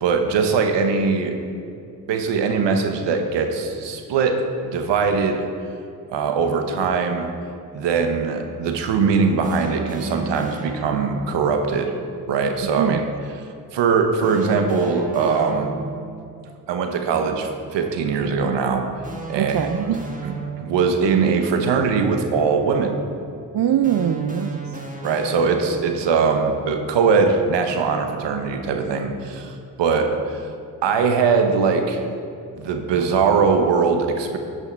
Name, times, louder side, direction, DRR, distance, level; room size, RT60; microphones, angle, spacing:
voice 1, 0.0-1.4 2.1-5.5 6.1-7.3 7.7-12.0 12.3-13.0 13.7-15.8 16.7-18.9 19.3-19.8 20.2-23.0 25.0-30.4 30.8-32.0 32.6-34.4, right 5 dB, 80° right, 6 dB, 1.0 m, -21 dB
sound 1, 9.4-11.3 14.2-16.1 19.0-21.0 23.8-26.0, right 3 dB, 20° right, 1.5 m, -34 dB
voice 2, 19.4-20.1 23.5-24.7, right 9 dB, 55° right, 9 dB, 0.5 m, -22 dB
11.0 x 6.4 x 4.5 m, 2.6 s
supercardioid pair, 45°, 43 cm